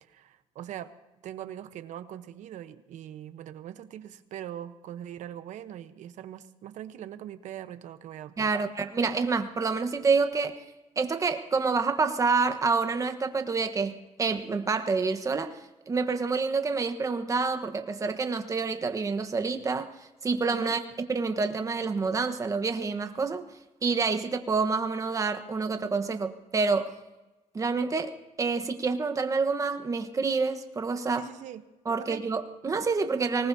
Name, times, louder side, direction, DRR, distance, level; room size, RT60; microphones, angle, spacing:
voice 1, 0.1-0.9 1.2-8.5 20.5-20.7 31.2-31.6 32.0-32.2, right 11 dB, 70° right, 11 dB, 1.0 m, -41 dB
voice 2, 8.4-10.5 11.0-15.5 15.9-19.9 20.2-20.8 21.1-23.4 23.8-26.9 27.5-31.3 31.8-33.5, right 4 dB, 25° right, 7 dB, 1.2 m, -27 dB
25.0 x 19.0 x 2.8 m, 1.1 s
cardioid pair, 140°, 13 cm